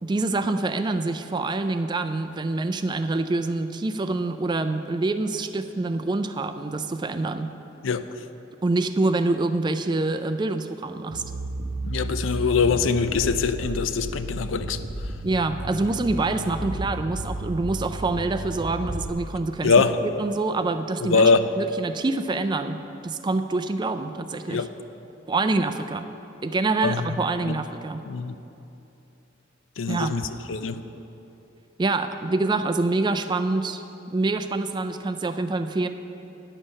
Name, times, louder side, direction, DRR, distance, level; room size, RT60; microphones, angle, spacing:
voice 1, 0.0-7.5 8.6-11.2 15.2-21.3 21.6-24.7 25.3-26.1 26.4-28.0 29.9-30.1 31.8-33.8 34.1-35.9, right 2 dB, 20° right, 9 dB, 0.3 m, -26 dB
sound 1, 11.1-19.1, right 1 dB, 50° right, 0.7 m, -33 dB
voice 2, 11.8-14.8 19.6-20.0 21.1-21.4 24.5-24.7 26.8-27.0 27.4-27.6 28.1-28.3 29.8-30.2 30.5-30.8, left 5 dB, 80° left, 11 dB, 0.5 m, -22 dB
9.9 x 7.2 x 6.4 m, 2.9 s
head